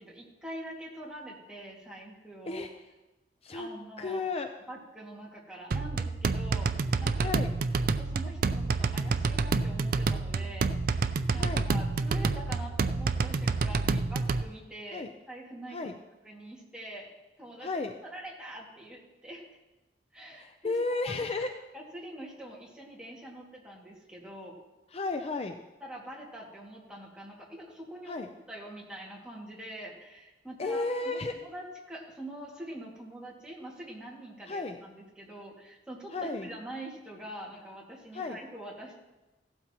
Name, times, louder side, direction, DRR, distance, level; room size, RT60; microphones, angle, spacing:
voice 1, 0.0-2.6 3.5-4.2 4.7-7.3 8.0-15.9 16.2-17.1 17.4-19.5 20.1-20.7 21.0-21.5 21.7-24.6 25.8-28.2 28.5-39.0, right 1 dB, 5° right, -3 dB, 2.1 m, -44 dB
voice 2, 4.0-4.5 7.2-7.5 11.3-11.7 14.9-15.1 15.7-15.9 17.6-17.9 20.3-21.5 24.9-25.6 28.1-28.3 30.6-31.3 34.5-34.8 36.1-36.5 38.1-38.4, left 3 dB, 35° left, 7 dB, 0.5 m, -33 dB
sound 1, 5.7-14.4, right 4 dB, 55° right, 0.4 m, -28 dB
16.0 x 12.0 x 3.0 m, 1.1 s
head